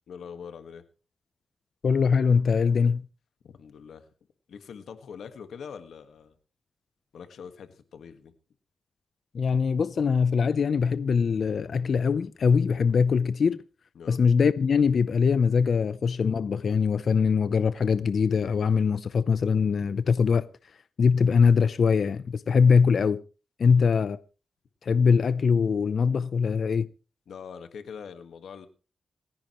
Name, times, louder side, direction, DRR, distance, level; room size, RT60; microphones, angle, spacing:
voice 1, 0.1-0.8 3.4-4.1 4.5-6.3 7.1-8.3 13.9-14.2 23.6-23.9 27.3-28.7, left 6 dB, 85° left, 1.6 m, -43 dB
voice 2, 1.8-3.0 9.3-13.6 14.1-20.5 21.0-23.2 23.6-24.2 24.8-26.9, left 5 dB, 65° left, 0.6 m, -22 dB
27.0 x 10.5 x 3.1 m
cardioid pair, 70°, 0 cm